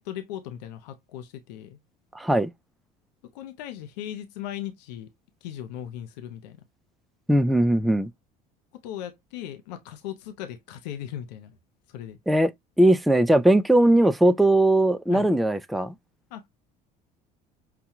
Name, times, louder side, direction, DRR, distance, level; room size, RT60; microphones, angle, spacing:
voice 1, 0.0-1.8 3.2-5.1 5.4-6.6 8.7-11.6 11.9-12.2 15.1-15.3 16.3-16.5, left 11 dB, 85° left, 0.7 m, -38 dB
voice 2, 2.1-2.5 7.3-8.1 12.3-12.5 12.8-15.9, right 1 dB, ahead, 0.4 m, -19 dB
5.8 x 2.3 x 2.8 m
supercardioid pair, 80°, 21 cm